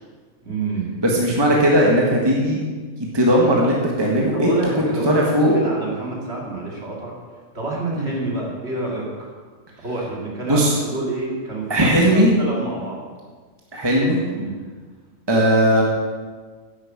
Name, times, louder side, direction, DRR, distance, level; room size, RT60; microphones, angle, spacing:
voice 1, 0.4-0.9 4.3-7.1 7.5-9.3 9.8-13.0 14.3-14.5, right 2 dB, 45° right, -3 dB, 3.0 m, -28 dB
voice 2, 1.0-2.6 3.1-4.5 4.8-5.6 8.0-8.1 10.5-10.8 11.7-12.3 13.7-14.2 15.3-15.8, equal, 15° right, -2 dB, 1.7 m, -17 dB
11.0 x 7.9 x 7.5 m, 1.5 s
omnidirectional pair, 1.5 m